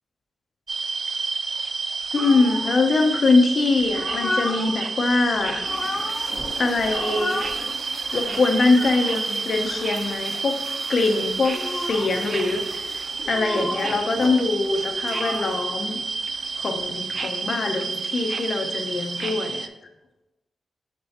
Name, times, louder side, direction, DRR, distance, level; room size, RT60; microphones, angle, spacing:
sound 1, 0.7-19.7, right 4 dB, 50° right, 0.4 m, -30 dB
voice 1, 2.1-5.6 6.6-7.4 8.1-10.6 10.9-12.9 13.3-16.0 16.6-19.7, left 3 dB, 55° left, 5 dB, 0.7 m, -23 dB
sound 2, 2.2-2.7 3.8-4.8 5.3-6.5 6.8-7.6 8.0-8.9 9.5-9.8 11.3-12.2 13.1-14.0 14.6-15.7 16.6-17.0, left 1 dB, 20° left, 1.1 m, -32 dB
sound 3, 5.7-19.3, right 1 dB, 25° right, 1.8 m, -41 dB
6.4 x 5.2 x 2.9 m, 1.0 s
wide cardioid pair, 110°, 0 cm